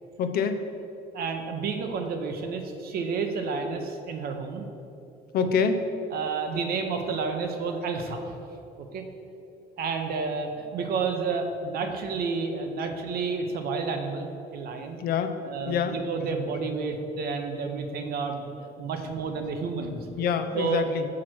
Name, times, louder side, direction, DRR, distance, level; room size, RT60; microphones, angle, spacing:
voice 1, 0.2-0.6 5.3-5.8 8.1-8.2 15.0-15.4 15.7-16.0 20.2-21.1, left 6 dB, 65° left, 8 dB, 0.6 m, -26 dB
voice 2, 1.1-4.6 6.1-8.4 8.8-9.0 9.8-15.0 15.4-18.5 18.8-20.1 20.5-20.8, right 4 dB, 65° right, 5 dB, 0.9 m, -30 dB
5.9 x 4.8 x 6.0 m, 2.8 s
cardioid pair, 110°, 17 cm